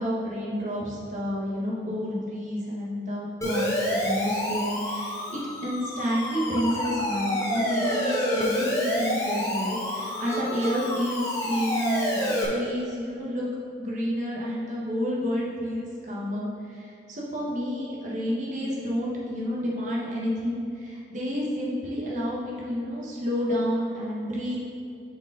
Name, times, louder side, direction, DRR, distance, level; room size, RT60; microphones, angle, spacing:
voice 1, 0.0-13.5 13.8-24.6, equal, 45° right, -5 dB, 1.4 m, -30 dB
Siren, 3.4-12.4, left 1 dB, 20° left, 1.0 m, -28 dB
6.9 x 5.3 x 4.0 m, 2.6 s
head